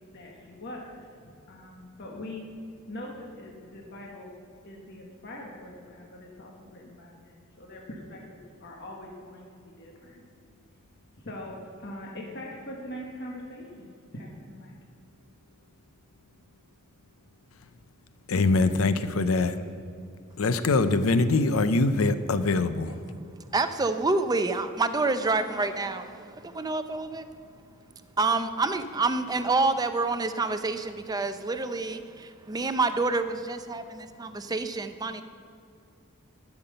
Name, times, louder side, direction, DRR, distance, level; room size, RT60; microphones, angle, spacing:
voice 1, 0.1-2.4 2.9-4.4 4.6-10.2 11.2-14.8 19.6-19.7, left 1 dB, 55° left, -2 dB, 1.4 m, -42 dB
voice 2, 18.3-19.6 20.4-22.9, left 3 dB, 90° left, 12 dB, 0.6 m, -23 dB
voice 3, 23.5-27.3 28.2-35.2, right 3 dB, 20° right, 10 dB, 0.5 m, -28 dB
12.5 x 5.9 x 6.7 m, 2.4 s
head